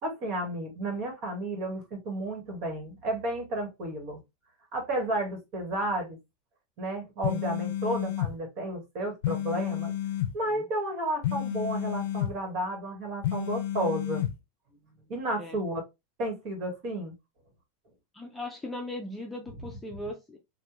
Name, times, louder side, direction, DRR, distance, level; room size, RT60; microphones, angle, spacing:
voice 1, 0.0-4.2 4.7-6.2 6.8-9.9 10.3-14.2 15.1-15.8 16.2-17.1, right 1 dB, 45° right, 1.6 m, -32 dB
sound 1, 7.2-8.3 9.2-10.3 11.2-12.3 13.2-14.3, left 12 dB, 70° left, 0.5 m, -30 dB
voice 2, 18.1-20.4, left 1 dB, 10° left, 0.6 m, -38 dB
3.3 x 2.3 x 2.9 m
supercardioid pair, 140°, 0 cm